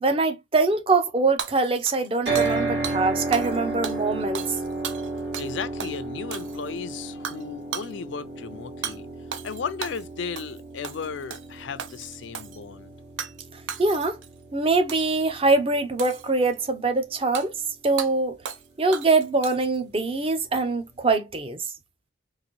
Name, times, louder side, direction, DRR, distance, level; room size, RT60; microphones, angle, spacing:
voice 1, 0.0-4.4 13.5-14.2 14.5-17.5 17.8-18.4 18.8-21.7, right 3 dB, 30° right, 0.5 m, -23 dB
Hammer / Shatter, 1.4-2.6 2.8-3.0 3.3-3.6 3.8-5.5 5.8-5.9 6.3-6.8 7.2-7.4 7.7-7.9 8.8-9.0 9.3-10.0 10.4-10.6 10.8-11.5 11.8-12.6 13.2-13.4 13.7-14.3 14.9-15.2 16.0-16.5 17.3-17.5 18.0-18.1 18.4-18.7 18.9-19.8, right 7 dB, 90° right, 0.5 m, -35 dB
sound 1, 2.3-16.4, right 3 dB, 65° right, 2.2 m, -33 dB
voice 2, 5.4-9.1 9.4-12.9, left 6 dB, 75° left, 0.4 m, -35 dB
3.9 x 2.5 x 3.0 m
head